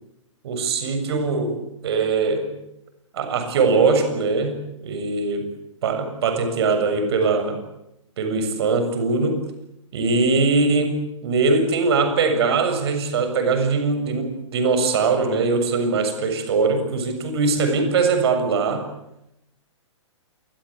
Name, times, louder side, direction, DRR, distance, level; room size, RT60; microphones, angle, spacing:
voice 1, 0.4-2.6 3.1-5.5 5.8-7.6 8.2-9.4 9.9-18.9, right 4 dB, 55° right, 7 dB, 7.3 m, -21 dB
28.0 x 22.0 x 8.7 m, 0.87 s
figure-of-eight pair, 115°, 16 cm